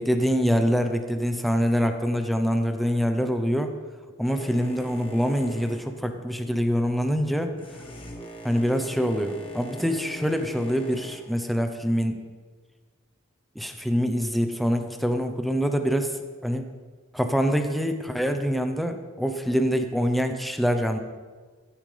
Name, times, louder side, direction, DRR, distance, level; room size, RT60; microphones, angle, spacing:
voice 1, 0.0-3.7 4.2-7.5 8.4-12.2 13.5-16.7 17.1-21.0, equal, ahead, 6 dB, 0.7 m, -25 dB
Boat Water vehicle, 4.2-11.2, equal, 25° left, 1.5 m, -42 dB
14.5 x 9.0 x 3.4 m, 1.4 s
head